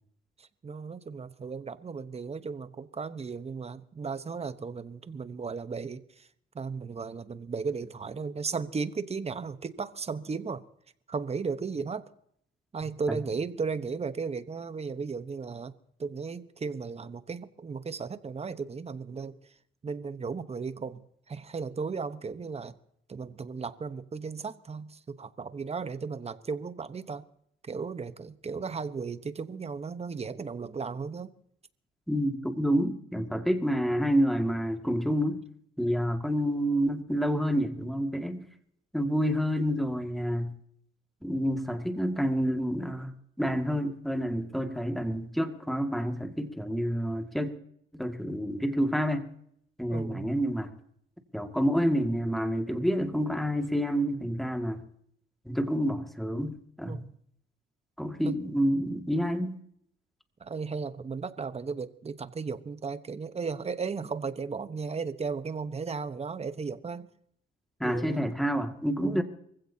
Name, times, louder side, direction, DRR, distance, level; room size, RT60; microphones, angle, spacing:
voice 1, 0.4-6.3 6.5-10.6 11.1-12.0 12.7-15.7 16.0-19.4 19.8-21.0 21.3-22.8 23.1-27.2 27.6-31.3 49.9-50.3 56.8-57.1 58.2-58.3 60.4-67.1 67.8-68.2 69.0-69.2, right 5 dB, 30° right, 1.1 m, -35 dB
voice 2, 32.1-35.4 35.8-38.4 38.9-40.5 41.2-47.5 47.9-49.3 49.8-50.7 51.3-54.8 55.5-57.0 58.0-59.6 67.8-69.2, equal, ahead, 2.1 m, -28 dB
25.0 x 15.5 x 2.8 m
cardioid pair, 90°, 20 cm